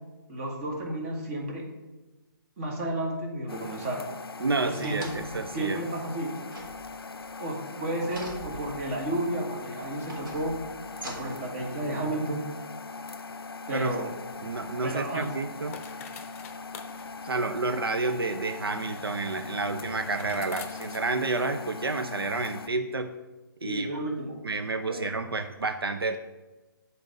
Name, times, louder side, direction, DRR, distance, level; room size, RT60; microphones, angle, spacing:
voice 1, 0.3-1.6 2.6-4.1 4.6-5.3 5.5-6.3 7.4-10.5 11.0-12.4 13.7-14.1 14.8-15.3 23.6-24.4 24.9-25.1, right 1 dB, 35° right, 0 dB, 1.7 m, -32 dB
sound 1, 3.5-22.7, left 4 dB, 85° left, 0.5 m, -41 dB
voice 2, 4.4-5.8 13.7-13.9 14.4-15.8 17.2-23.1 23.6-23.9 24.4-26.2, right 3 dB, 90° right, 8 dB, 0.5 m, -30 dB
sound 2, 4.6-5.5 6.3-7.3 8.0-9.1 9.8-11.5 12.2-12.3, right 1 dB, 60° right, 1.8 m, -44 dB
sound 3, 15.0-21.9, left 6 dB, 35° left, 0.6 m, -49 dB
6.8 x 4.1 x 5.2 m, 1.1 s
figure-of-eight pair, 140°, 12 cm